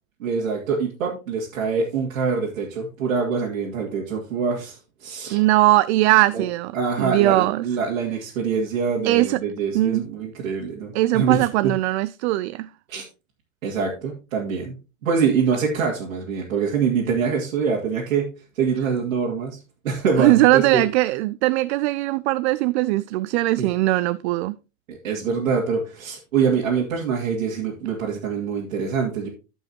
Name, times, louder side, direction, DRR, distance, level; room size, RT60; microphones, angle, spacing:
voice 1, 0.2-5.4 6.3-6.4 6.7-11.7 12.9-13.0 13.6-18.3 18.6-19.6 19.8-20.8 23.6-23.7 25.0-29.3, right 6 dB, 85° right, 2.3 m, -24 dB
voice 2, 5.3-6.7 7.0-7.6 9.0-9.4 9.7-10.0 10.9-12.7 20.2-24.6, right 17 dB, 55° right, 0.4 m, -20 dB
15.5 x 5.4 x 2.8 m
supercardioid pair, 125°, 39 cm